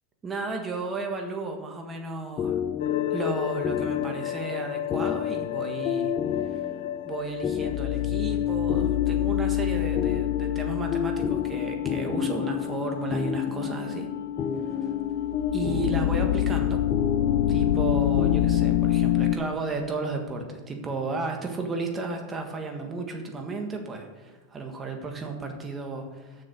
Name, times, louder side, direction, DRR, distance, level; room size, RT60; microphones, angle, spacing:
voice 1, 0.2-2.6 3.1-6.1 6.5-6.6 7.0-14.1 14.7-14.8 15.5-16.8 17.5-26.4, right 3 dB, 15° right, 3 dB, 1.5 m, -34 dB
sound 1, 2.4-19.1, left 8 dB, 25° left, 0.5 m, -32 dB
sound 2, 2.8-19.4, left 11 dB, 85° left, 0.5 m, -27 dB
6.9 x 6.7 x 7.8 m, 1.4 s
supercardioid pair, 145°, 0 cm